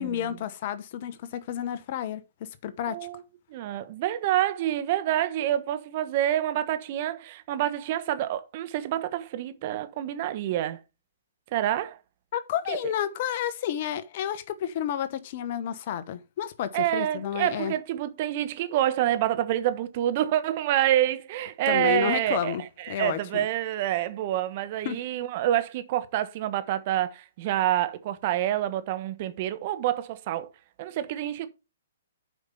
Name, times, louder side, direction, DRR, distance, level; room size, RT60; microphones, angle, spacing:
voice 1, 0.0-3.0 12.3-17.7 21.7-23.5 24.8-25.0, left 10 dB, 50° left, 1.0 m, -31 dB
voice 2, 2.9-3.2 3.5-10.8 11.5-12.0 12.7-12.8 16.7-30.5 30.8-31.5, right 12 dB, 45° right, 1.2 m, -27 dB
7.9 x 5.3 x 5.5 m
hypercardioid pair, 130°, 0 cm